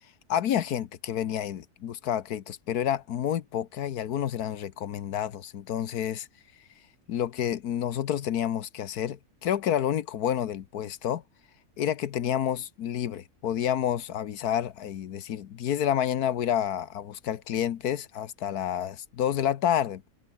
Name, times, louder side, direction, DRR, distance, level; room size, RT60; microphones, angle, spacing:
voice 1, 0.3-6.3 7.1-11.2 11.8-20.1, left 10 dB, 75° left, 1.4 m, -29 dB
open air
omnidirectional pair, 1.7 m